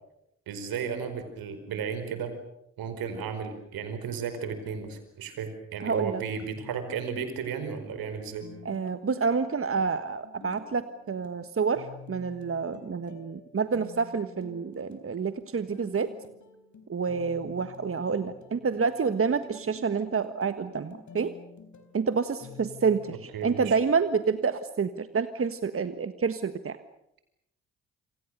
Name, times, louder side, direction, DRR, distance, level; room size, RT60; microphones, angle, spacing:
voice 1, 0.5-2.3 2.8-8.4 23.3-23.8, right 6 dB, 70° right, 9 dB, 4.9 m, -34 dB
voice 2, 5.8-6.2 8.6-16.1 16.9-21.3 21.9-26.8, right 5 dB, 35° right, 10 dB, 1.5 m, -28 dB
sound 1, 6.5-24.5, left 5 dB, 50° left, 4.1 m, -50 dB
27.5 x 25.5 x 6.7 m, 0.82 s
hypercardioid pair, 45°, 37 cm